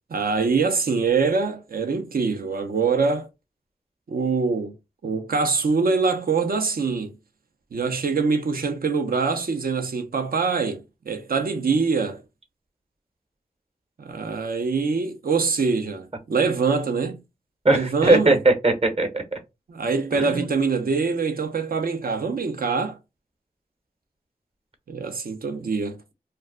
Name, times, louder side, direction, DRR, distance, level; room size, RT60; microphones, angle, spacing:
voice 1, 0.1-3.3 4.1-4.7 5.0-7.1 7.7-12.2 14.0-17.2 17.7-18.4 19.7-23.0 24.9-26.0, right 4 dB, 65° right, 0.7 m, -24 dB
voice 2, 17.6-19.4 20.1-20.5, right 2 dB, 40° right, 1.0 m, -20 dB
2.3 x 2.2 x 3.6 m
cardioid pair, 40°, 16 cm